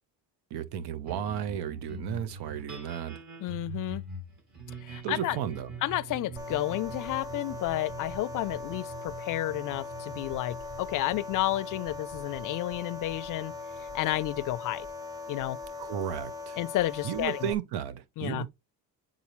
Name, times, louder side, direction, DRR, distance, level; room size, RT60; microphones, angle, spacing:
voice 1, 0.5-3.2 5.0-5.7 15.8-16.6 17.0-18.5, right 10 dB, 85° right, 0.9 m, -34 dB
sound 1, 1.1-15.8, right 4 dB, 50° right, 3.4 m, -45 dB
voice 2, 3.4-4.0 4.8-5.4 5.8-13.5 13.9-14.9 15.3-15.6 16.6-17.5 18.2-18.5, left 15 dB, 55° left, 0.5 m, -31 dB
sound 2, 6.4-17.5, left 4 dB, 10° right, 0.6 m, -40 dB
8.5 x 3.8 x 3.0 m
cardioid pair, 150°, 38 cm